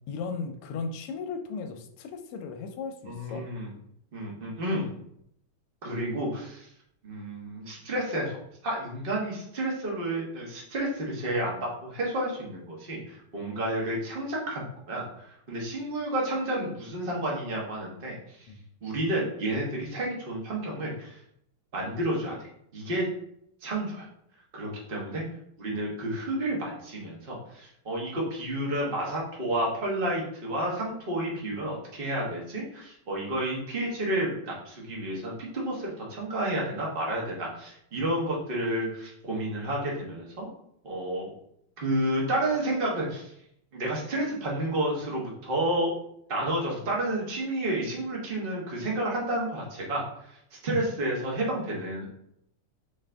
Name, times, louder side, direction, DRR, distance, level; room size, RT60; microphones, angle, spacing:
voice 1, 0.1-3.5 18.5-18.6, left 4 dB, 85° left, 6 dB, 1.6 m, -36 dB
voice 2, 3.0-3.7 4.1-4.9 5.8-6.7 7.0-18.5 18.8-21.2 21.7-22.4 22.7-23.1 23.6-24.0 24.5-25.2 25.6-40.5 40.8-41.3 41.8-43.3 43.7-45.9 46.3-52.1, right 1 dB, 35° right, -3 dB, 1.0 m, -31 dB
4.2 x 3.8 x 3.4 m, 0.73 s
omnidirectional pair, 2.4 m